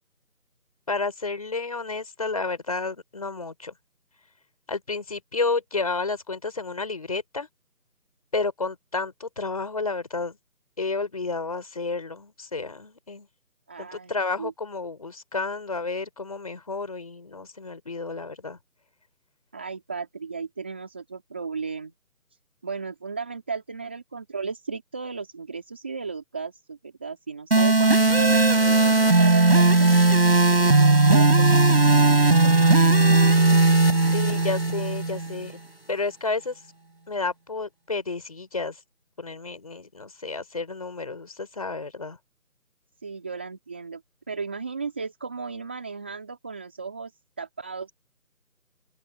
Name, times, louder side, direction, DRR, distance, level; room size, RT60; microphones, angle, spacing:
voice 1, 0.9-3.7 4.7-7.5 8.3-10.4 10.8-13.3 13.8-18.6 34.1-35.6 35.9-36.6 37.1-38.8 39.2-42.2, left 3 dB, 25° left, 5.4 m, -31 dB
voice 2, 13.7-14.1 14.4-14.5 19.5-21.9 22.6-29.9 30.6-32.9 43.0-44.0 44.3-47.1 47.4-47.9, right 5 dB, 10° right, 2.7 m, -35 dB
sound 1, 27.5-35.5, right 2 dB, 40° right, 7.7 m, -18 dB
open air
figure-of-eight pair, 175°, 45 cm